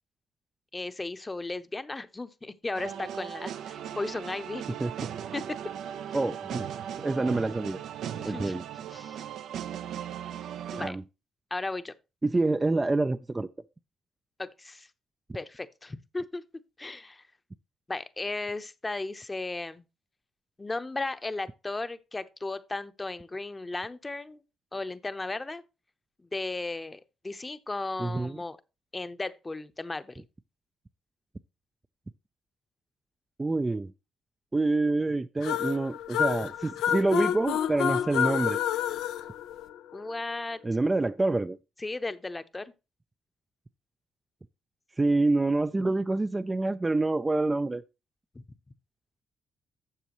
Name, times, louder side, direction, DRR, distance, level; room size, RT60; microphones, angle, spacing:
voice 1, 0.7-4.6 5.3-5.4 8.2-8.5 8.9-9.3 10.7-11.0 11.5-11.9 14.4-14.9 15.3-16.4 16.8-17.2 17.9-19.8 20.6-24.4 24.7-25.6 26.2-28.6 28.9-30.2 39.9-40.6 41.8-42.7 48.3-48.4, left 2 dB, 20° left, 0.8 m, -35 dB
sound 1, 2.7-10.9, right 9 dB, 75° right, 0.6 m, -38 dB
voice 2, 6.1-6.7 7.0-7.8 8.2-8.6 10.8-11.0 12.2-13.5 28.0-28.4 33.4-33.9 34.5-38.6 40.6-41.6 45.0-47.8, right 2 dB, 20° right, 0.4 m, -27 dB
sound 2, 35.4-40.1, left 10 dB, 85° left, 0.5 m, -29 dB
12.5 x 7.3 x 3.0 m
cardioid pair, 90°, 0 cm